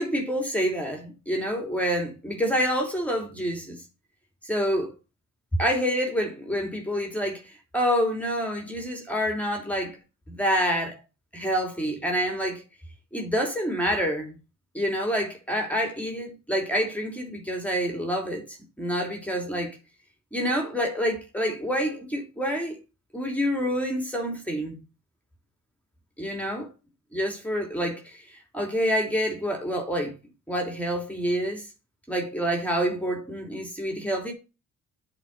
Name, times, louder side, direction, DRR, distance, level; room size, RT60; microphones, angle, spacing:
voice 1, 0.0-3.8 4.4-4.9 5.6-7.4 7.7-10.0 10.3-11.0 11.3-12.6 13.1-14.4 14.7-19.8 20.3-22.8 23.1-24.8 26.2-26.7 27.1-30.2 30.5-31.6 32.1-34.3, equal, 5° left, 2.9 m, -27 dB
8.1 x 4.6 x 6.6 m
cardioid pair, 90°, 30 cm